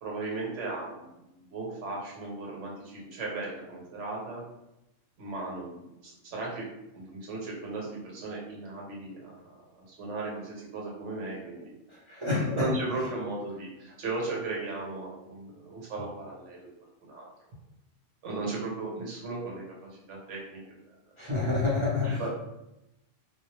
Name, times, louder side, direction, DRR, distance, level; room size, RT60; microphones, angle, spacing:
voice 1, 0.0-4.4 5.2-6.7 6.9-11.7 12.3-16.7 17.0-17.3 18.2-20.6 22.0-22.3, right 3 dB, 70° right, -3 dB, 1.1 m, -36 dB
voice 2, 12.1-12.7 21.2-22.3, left 3 dB, 35° right, -9 dB, 0.5 m, -28 dB
2.3 x 2.0 x 2.9 m, 0.89 s
omnidirectional pair, 1.3 m